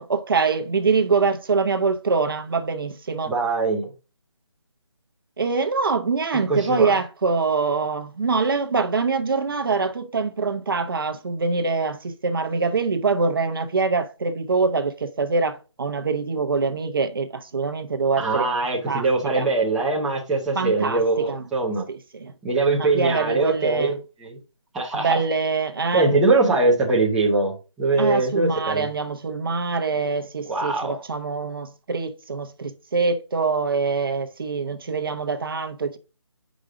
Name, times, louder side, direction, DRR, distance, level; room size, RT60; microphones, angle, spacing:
voice 1, 0.0-3.3 5.4-18.5 18.8-19.0 19.3-19.5 20.5-21.4 21.9-22.3 22.7-24.0 24.9-26.1 28.0-36.0, right 4 dB, 45° right, 0.9 m, -24 dB
voice 2, 3.2-3.9 6.5-6.9 18.2-21.8 22.4-23.9 24.2-24.4 24.7-25.2 25.9-28.9 30.4-31.0, right 3 dB, 5° right, 0.7 m, -22 dB
6.3 x 5.1 x 3.7 m
figure-of-eight pair, 170°, 16 cm